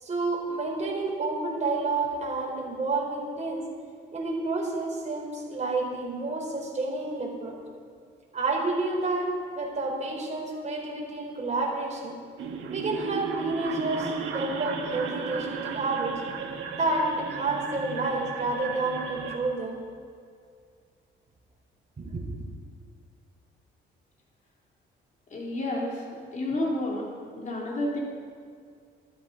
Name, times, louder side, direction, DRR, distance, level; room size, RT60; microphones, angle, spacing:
voice 1, 0.0-3.6 4.1-7.6 8.3-9.3 9.5-12.2 12.7-16.1 16.8-19.8 22.0-22.2, right 3 dB, 35° right, -2 dB, 4.6 m, -29 dB
sound 1, 12.4-19.4, right 6 dB, 80° right, 1.8 m, -35 dB
voice 2, 25.3-27.1 27.4-28.0, left 1 dB, 40° left, -2 dB, 3.5 m, -30 dB
14.0 x 12.5 x 5.3 m, 2.2 s
cardioid pair, 90°, 20 cm